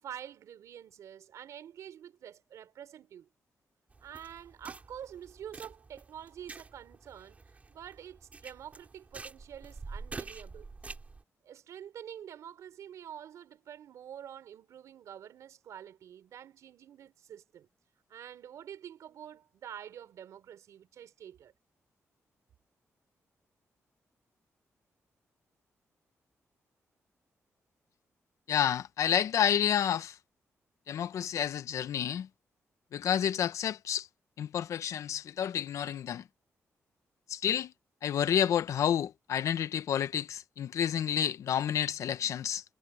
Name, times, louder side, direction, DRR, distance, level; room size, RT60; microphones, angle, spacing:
voice 1, 0.0-3.3 4.0-7.4 7.7-10.7 11.4-17.7 18.1-21.5, right 9 dB, 90° right, 3.6 m, -47 dB
sound 1, 3.9-11.2, right 4 dB, 25° right, 5.2 m, -47 dB
voice 2, 28.5-30.2 30.9-32.3 32.9-34.1 34.4-36.2 37.3-37.7 38.0-42.6, left 9 dB, 80° left, 1.0 m, -30 dB
wide cardioid pair, 150°, 5 cm